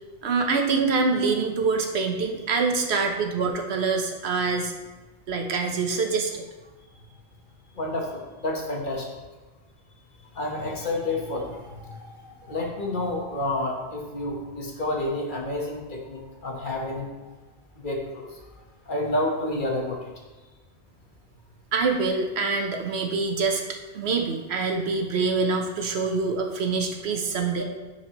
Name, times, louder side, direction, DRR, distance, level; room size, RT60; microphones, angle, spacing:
voice 1, 0.2-4.7 5.3-6.4 21.7-27.6, right 4 dB, 90° right, 3 dB, 1.1 m, -25 dB
voice 2, 7.7-9.2 10.3-17.3 17.8-18.4 18.9-20.1 27.6-27.7, left 2 dB, 50° left, -1 dB, 1.3 m, -30 dB
10.0 x 4.7 x 2.9 m, 1.2 s
omnidirectional pair, 1.0 m